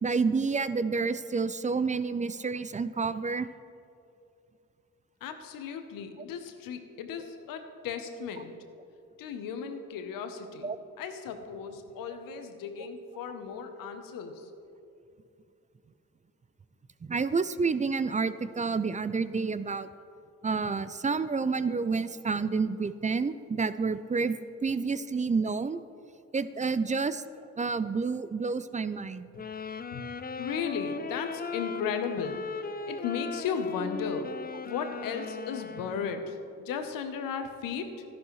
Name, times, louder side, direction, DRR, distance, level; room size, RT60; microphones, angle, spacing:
voice 1, 0.0-3.5 10.6-10.8 17.0-19.9 20.4-25.8 26.3-27.2 27.6-29.3, right 4 dB, 20° right, 14 dB, 0.4 m, -29 dB
voice 2, 5.2-8.5 9.2-10.7 11.0-14.5 29.9-30.0 30.4-32.4 32.9-34.3 34.6-38.0, left 6 dB, 80° left, 7 dB, 0.9 m, -35 dB
sound 1, 29.3-36.4, left 4 dB, 30° left, 0.5 m, -38 dB
13.0 x 11.0 x 3.1 m, 2.5 s
hypercardioid pair, 40°, 33 cm